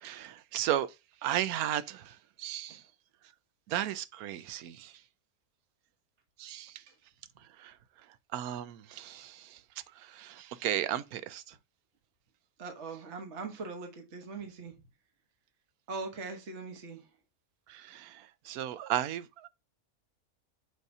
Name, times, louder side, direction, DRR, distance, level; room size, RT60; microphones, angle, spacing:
voice 1, 0.0-0.9 1.2-2.8 3.7-4.9 6.4-6.8 7.6-7.8 8.3-9.6 9.9-11.6 17.7-19.5, right 12 dB, 75° right, 1.1 m, -35 dB
voice 2, 12.6-14.7 15.9-17.1, right 4 dB, 50° right, 1.4 m, -41 dB
8.1 x 2.8 x 5.2 m
omnidirectional pair, 1.6 m